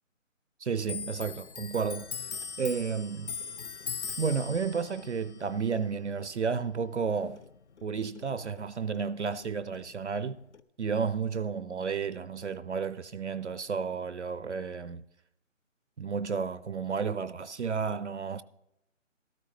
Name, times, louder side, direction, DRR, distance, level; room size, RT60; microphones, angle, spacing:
voice 1, 0.6-2.1 2.6-3.3 4.2-7.4 7.8-10.4 10.8-15.0 16.0-18.4, right 5 dB, 60° right, 0.5 m, -32 dB
Clock, 0.8-7.9 8.2-9.5 9.7-10.6, left 6 dB, 60° left, 0.6 m, -41 dB
13.0 x 13.0 x 3.2 m
hypercardioid pair, 180°, 39 cm